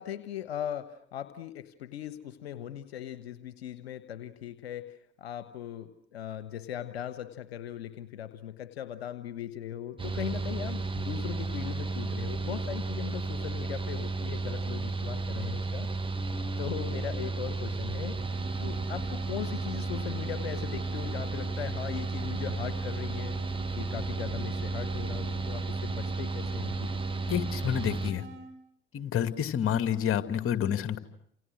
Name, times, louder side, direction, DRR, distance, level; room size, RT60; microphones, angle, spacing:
voice 1, 0.0-16.1 16.6-23.4 23.8-26.9, left 10 dB, 80° left, 11 dB, 1.3 m, -39 dB
Mechanical fan, 10.0-28.1, right 3 dB, 15° right, 2.0 m, -33 dB
sound 1, 16.1-17.4 17.9-19.6 19.9-22.6, left 4 dB, 5° left, 8.0 m, -51 dB
sound 2, 18.2-28.5, right 2 dB, 80° right, 4.2 m, -46 dB
voice 2, 27.3-28.3 28.9-31.0, left 9 dB, 45° left, 9 dB, 2.5 m, -29 dB
30.0 x 28.5 x 6.4 m, 0.69 s
hypercardioid pair, 65°, 31 cm